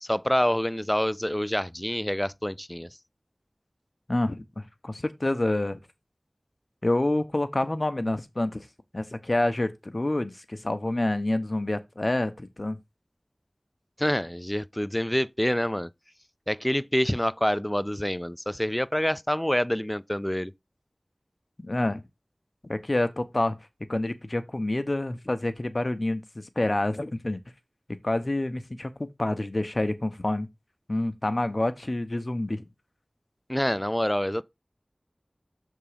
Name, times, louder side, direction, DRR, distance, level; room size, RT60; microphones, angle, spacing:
voice 1, 0.0-2.9 14.0-15.9 16.5-20.5 33.5-34.4, equal, 15° left, 0.4 m, -27 dB
voice 2, 4.1-5.8 6.8-8.6 8.9-12.8 21.6-22.0 22.6-23.6 23.9-27.4 28.0-30.5 30.9-32.6, left 1 dB, 50° left, 1.0 m, -28 dB
7.0 x 3.7 x 5.0 m
wide cardioid pair, 45°, 0 cm